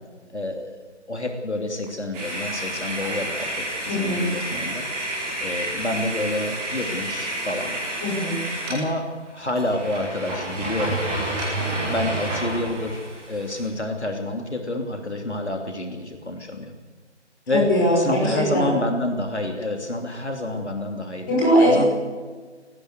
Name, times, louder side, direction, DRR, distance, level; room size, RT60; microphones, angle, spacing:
voice 1, 0.3-0.8 1.1-4.8 5.4-7.8 8.7-9.0 9.3-11.0 11.9-13.0 13.3-16.7 17.5-17.7 18.0-21.4 21.7-21.8, left 1 dB, 70° left, 3 dB, 3.0 m, -28 dB
sound 1, 2.1-8.8 9.3-9.4 9.6-13.7, right 1 dB, 5° right, 1.1 m, -30 dB
voice 2, 3.9-4.2 8.0-8.3 17.5-18.4 21.3-21.9, equal, 15° left, -4 dB, 5.9 m, -20 dB
19.0 x 17.5 x 8.1 m, 1.4 s
figure-of-eight pair, 155°, 35 cm